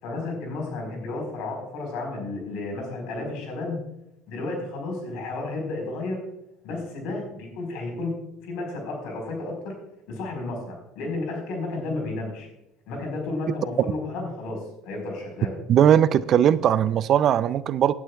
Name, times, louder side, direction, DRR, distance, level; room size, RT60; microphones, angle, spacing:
voice 1, 0.0-3.8 4.3-6.2 6.6-8.1 8.4-9.7 10.1-12.5 12.9-15.6, left 2 dB, 70° left, 2 dB, 4.3 m, -32 dB
voice 2, 15.7-17.9, right 9 dB, 50° right, 16 dB, 0.4 m, -19 dB
17.0 x 9.7 x 2.3 m, 0.83 s
hypercardioid pair, 75°, 0 cm